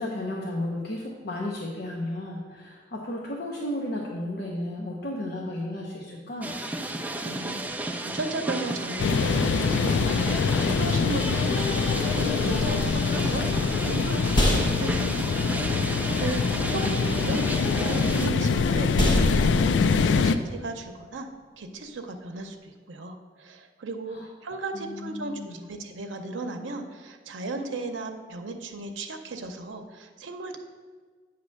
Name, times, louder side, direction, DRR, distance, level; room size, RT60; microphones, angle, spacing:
voice 1, 0.0-6.6 16.1-16.3 16.8-17.5 24.1-24.3 24.7-25.6, left 1 dB, 60° left, -3 dB, 0.8 m, -34 dB
sound 1, 6.4-18.3, right 1 dB, 10° right, 0.3 m, -32 dB
voice 2, 7.2-11.6 12.0-17.5 17.9-21.3 21.6-30.6, right 2 dB, 85° right, 5 dB, 0.6 m, -36 dB
sound 2, 9.0-20.4, left 5 dB, 75° left, 0.3 m, -24 dB
sound 3, 14.3-22.6, equal, 25° left, 1.1 m, -31 dB
8.5 x 2.9 x 6.3 m, 1.5 s
head